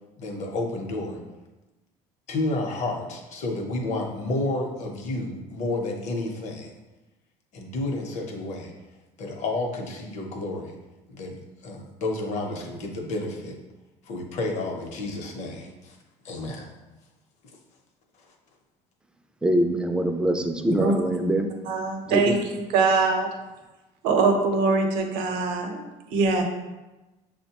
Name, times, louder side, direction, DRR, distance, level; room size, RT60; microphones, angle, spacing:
voice 1, 0.2-1.2 2.3-6.8 7.5-8.7 9.2-10.7 11.1-13.5 14.1-16.0 16.2-16.7, left 2 dB, 55° left, 0.8 m, -31 dB
voice 2, 19.4-21.5 22.1-22.3, right 1 dB, 5° right, 0.3 m, -23 dB
voice 3, 21.7-22.4 22.7-23.3 24.0-25.8 26.1-26.4, right 4 dB, 85° right, 0.7 m, -22 dB
6.4 x 2.1 x 2.8 m
cardioid pair, 125°, 14 cm